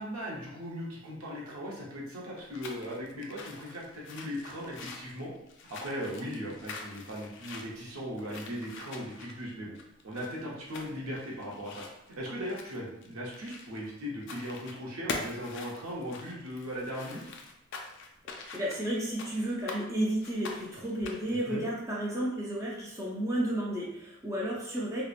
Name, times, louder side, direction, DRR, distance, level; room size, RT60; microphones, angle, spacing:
voice 1, 0.0-5.3 5.7-9.7 10.0-17.2 21.3-21.6, equal, 70° right, -3 dB, 0.7 m, -38 dB
sound 1, 2.3-13.9 14.2-14.8 15.1-19.8 20.2-21.4, left 4 dB, 55° left, 0.3 m, -44 dB
voice 2, 18.5-25.0, right 1 dB, 15° right, -5 dB, 0.4 m, -32 dB
2.8 x 2.0 x 2.4 m, 0.85 s
head